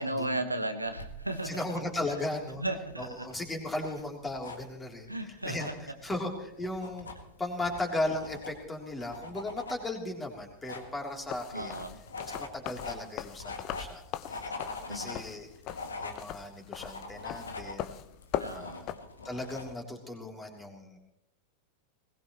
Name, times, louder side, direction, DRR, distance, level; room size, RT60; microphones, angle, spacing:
voice 1, 0.0-1.6 2.1-2.2 2.6-3.3 5.1-5.7 11.5-12.0 14.9-15.2 18.4-18.8, right 1 dB, 85° right, 7 dB, 1.2 m, -35 dB
sound 1, 0.8-19.7, left 3 dB, 70° left, 1.9 m, -44 dB
voice 2, 1.4-2.6 3.0-7.1 7.4-11.7 12.2-14.0 14.3-14.5 14.9-15.5 16.0-18.0 18.5-18.8 19.2-21.0, left 2 dB, 10° left, 1 dB, 3.4 m, -36 dB
sound 2, 11.2-18.9, left 12 dB, 40° left, 0.8 m, -39 dB
21.0 x 19.5 x 3.1 m, 0.84 s
figure-of-eight pair, 90°, 0 cm